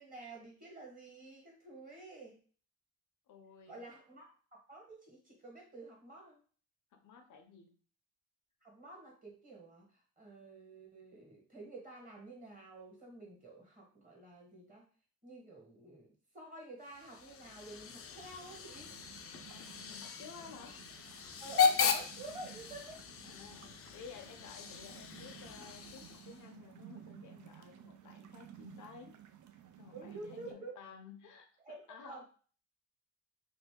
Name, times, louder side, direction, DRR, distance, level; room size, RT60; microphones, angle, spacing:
voice 1, 0.0-2.4 3.7-4.3 4.7-6.4 8.6-14.8 15.2-18.9 21.4-23.0 29.9-30.8 31.6-32.2, right 2 dB, 25° right, -1 dB, 1.3 m, -50 dB
voice 2, 3.3-3.8 6.9-7.7 19.5-20.8 23.3-23.7 23.9-29.2 29.8-32.2, left 6 dB, 85° left, 4 dB, 0.7 m, -54 dB
Hiss / Train / Alarm, 16.9-26.5, left 6 dB, 50° left, 0.4 m, -37 dB
sound 1, 18.2-30.5, right 11 dB, 80° right, 0.5 m, -56 dB
2.7 x 2.5 x 3.6 m, 0.41 s
cardioid pair, 120°, 30 cm